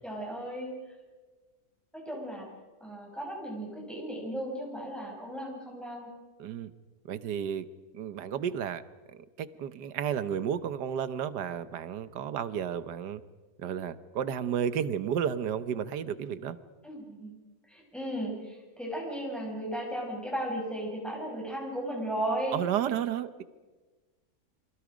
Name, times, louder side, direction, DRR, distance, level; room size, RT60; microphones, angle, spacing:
voice 1, 0.0-0.8 1.9-2.5 2.8-6.1 16.8-17.3 17.7-22.6, right 1 dB, ahead, 7.2 m, -35 dB
voice 2, 6.4-6.7 7.1-7.6 7.9-8.8 9.4-13.2 13.6-16.6 22.5-23.4, right 8 dB, 90° right, 1.6 m, -32 dB
29.5 x 24.5 x 5.1 m
omnidirectional pair, 1.7 m